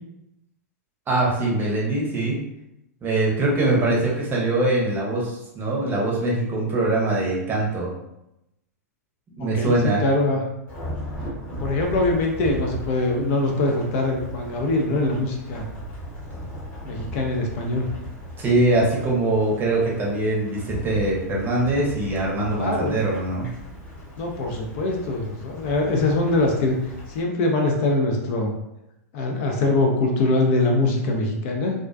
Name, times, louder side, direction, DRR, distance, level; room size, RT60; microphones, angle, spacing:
voice 1, 1.1-2.4 3.0-7.9 9.3-10.1 18.4-23.5, right 2 dB, 20° right, -3 dB, 0.7 m, -22 dB
voice 2, 3.6-4.0 9.4-9.7 10.0-10.4 11.6-15.6 16.8-17.9 22.6-23.0 24.2-26.8 27.1-28.5 29.1-31.7, left 2 dB, 45° left, 1 dB, 0.4 m, -23 dB
Thunderstorm / Rain, 10.7-27.2, equal, 15° left, 1.0 m, -37 dB
2.3 x 2.1 x 2.4 m, 0.87 s
hypercardioid pair, 105°, 9 cm